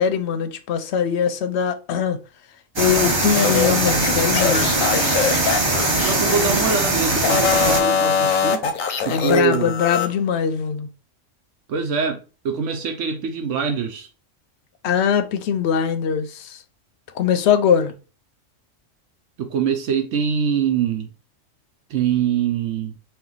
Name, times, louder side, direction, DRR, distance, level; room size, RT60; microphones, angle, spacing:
voice 1, 0.0-2.2 2.8-4.8 9.1-10.9 14.8-16.6 17.1-17.9, left 7 dB, 65° left, 0.8 m, -21 dB
sound 1, 2.8-7.8, right 2 dB, 25° right, 0.6 m, -21 dB
letters i say back, 3.3-6.8 7.2-10.1, left 6 dB, 90° left, 1.0 m, -22 dB
voice 2, 6.0-8.6 9.0-9.8 11.7-14.1 19.4-21.1 21.9-23.0, right 6 dB, 70° right, 0.9 m, -24 dB
4.4 x 2.2 x 3.8 m
omnidirectional pair, 1.3 m